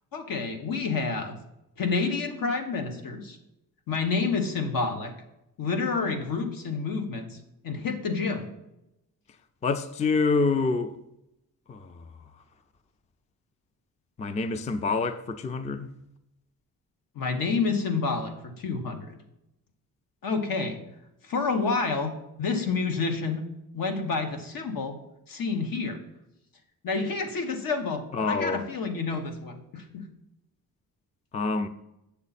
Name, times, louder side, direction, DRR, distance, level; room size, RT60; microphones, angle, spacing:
voice 1, 0.1-1.4 1.8-3.4 3.9-5.1 5.6-7.4 7.6-8.5 17.1-19.2 20.2-20.8 21.2-22.1 22.4-23.4 23.7-25.0 25.3-26.0 26.8-30.0, left 4 dB, 75° left, 1.3 m, -29 dB
voice 2, 9.6-10.9 11.7-12.0 14.2-15.9 28.1-28.6 31.3-31.7, left 4 dB, 20° left, 0.3 m, -27 dB
8.4 x 7.0 x 4.1 m
wide cardioid pair, 155°, 35 cm